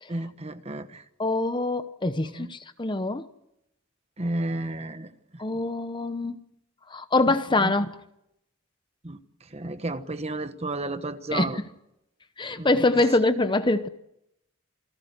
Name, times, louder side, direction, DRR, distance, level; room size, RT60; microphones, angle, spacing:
voice 1, 0.1-1.0 2.3-2.5 4.2-5.1 7.3-7.4 7.6-7.7 9.0-9.2 9.5-11.6 12.6-12.7, right 2 dB, 30° right, 1.2 m, -32 dB
voice 2, 1.2-3.3 5.4-6.4 6.9-7.9 11.3-11.5 12.4-13.9, left 2 dB, 20° left, 0.8 m, -24 dB
28.5 x 19.0 x 7.9 m
head